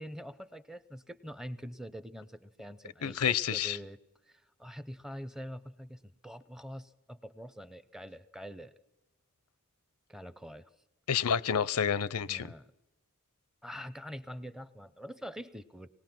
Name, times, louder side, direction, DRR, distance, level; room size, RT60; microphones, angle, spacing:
voice 1, 0.0-4.0 4.3-8.7 10.1-10.7 12.3-12.7 13.6-15.9, equal, ahead, 15 dB, 0.6 m, -45 dB
voice 2, 3.0-3.8 11.1-12.5, left 8 dB, 90° left, 19 dB, 0.6 m, -29 dB
25.5 x 19.5 x 6.0 m, 0.98 s
head